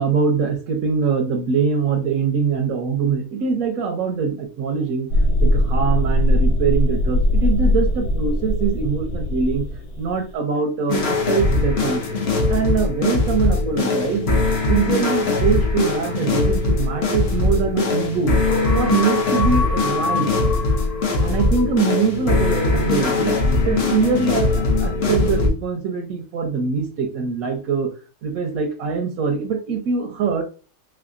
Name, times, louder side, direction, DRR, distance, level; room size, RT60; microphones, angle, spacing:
voice 1, 0.0-5.1 5.4-9.6 10.0-12.0 12.5-14.3 14.7-18.3 18.7-20.3 21.2-23.4 23.7-27.9 28.2-30.4, right 5 dB, 65° right, 3 dB, 0.9 m, -23 dB
sound 1, 5.1-10.2, left 1 dB, 90° left, 1.3 m, -20 dB
sound 2, 10.9-25.5, left 3 dB, 55° left, 0.7 m, -20 dB
3.4 x 3.3 x 2.4 m, 0.35 s
omnidirectional pair, 1.9 m